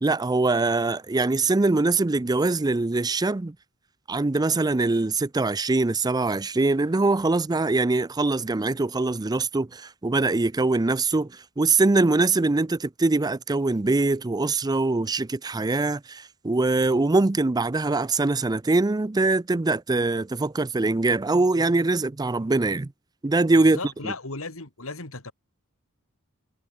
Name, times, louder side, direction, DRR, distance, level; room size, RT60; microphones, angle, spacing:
voice 1, 0.0-3.6 4.1-22.9 23.2-24.1, right 3 dB, 20° right, 0.5 m, -23 dB
voice 2, 23.7-25.3, left 3 dB, 70° left, 3.5 m, -35 dB
head